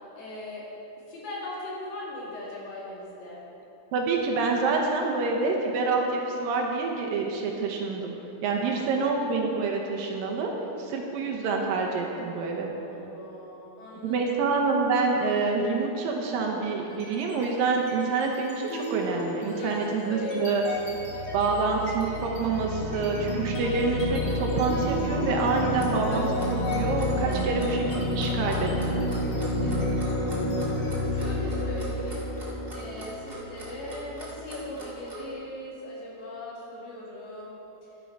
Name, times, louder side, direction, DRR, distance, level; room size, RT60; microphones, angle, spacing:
voice 1, 0.2-0.7 1.1-3.4 8.6-8.9 12.4-14.3 19.6-19.8 20.1-20.9 21.4-21.6 27.3-27.6 29.6-30.7 31.1-32.3 32.7-37.9, left 1 dB, 80° left, -5 dB, 4.3 m, -40 dB
voice 2, 3.9-8.1 8.4-10.5 10.8-12.7 14.0-20.6 21.3-29.0, right 4 dB, 75° right, 0 dB, 2.4 m, -27 dB
sound 1, 16.9-17.4 17.8-34.4, left 1 dB, 55° left, 1.1 m, -30 dB
Clock, 25.5-35.2, right 2 dB, 30° right, 1.1 m, -43 dB
10.5 x 10.5 x 4.6 m, 3.0 s
omnidirectional pair, 4.5 m